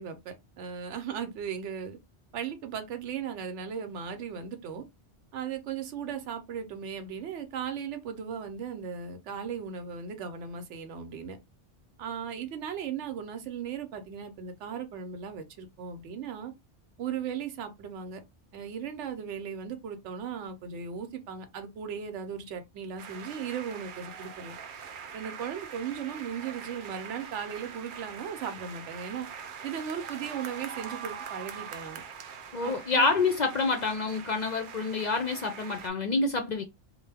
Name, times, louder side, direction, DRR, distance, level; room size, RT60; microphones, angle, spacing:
voice 1, 0.0-2.0 2.3-4.8 5.3-11.4 12.0-16.5 17.0-18.2 18.5-24.5 25.1-29.3 29.6-32.0 32.6-33.1, right 7 dB, 80° right, 1.0 m, -37 dB
sound 1, 23.0-35.9, right 7 dB, 60° right, 0.6 m, -43 dB
voice 2, 32.5-36.6, left 4 dB, 50° left, 0.5 m, -27 dB
2.6 x 2.2 x 3.3 m
omnidirectional pair, 1.2 m